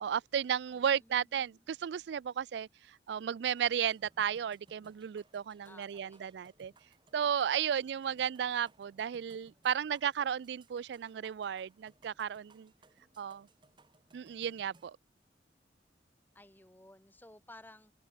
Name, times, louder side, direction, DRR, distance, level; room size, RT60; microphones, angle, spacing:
voice 1, 0.0-6.7 7.1-12.7 13.2-13.5 14.1-15.0, right 8 dB, 75° right, 0.3 m, -34 dB
voice 2, 0.7-1.6 5.6-6.3 16.3-17.9, left 1 dB, 10° left, 1.9 m, -57 dB
sound 1, 3.5-14.9, right 2 dB, 25° right, 1.7 m, -66 dB
head